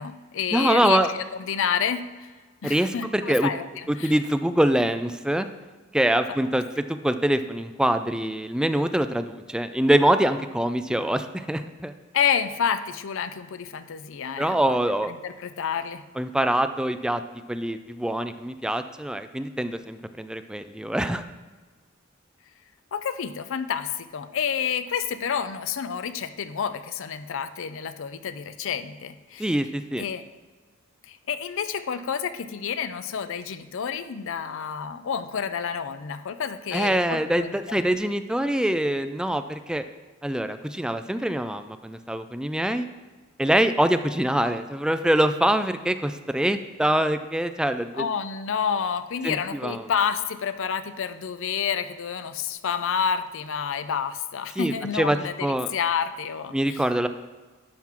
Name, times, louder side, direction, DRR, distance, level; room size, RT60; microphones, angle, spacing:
voice 1, 0.0-2.3 2.6-4.1 12.1-14.8 15.1-16.0 22.9-29.5 30.0-30.2 31.1-37.8 47.9-56.8, left 7 dB, 65° left, 11 dB, 0.5 m, -29 dB
voice 2, 0.5-1.1 2.6-3.5 3.9-5.5 5.9-11.9 14.4-15.1 16.2-17.2 17.5-21.2 29.4-30.0 36.7-39.8 40.2-42.9 43.4-48.0 49.2-49.8 54.6-55.7 56.5-57.1, right 1 dB, 5° right, 9 dB, 0.3 m, -24 dB
10.5 x 5.9 x 3.7 m, 1.3 s
head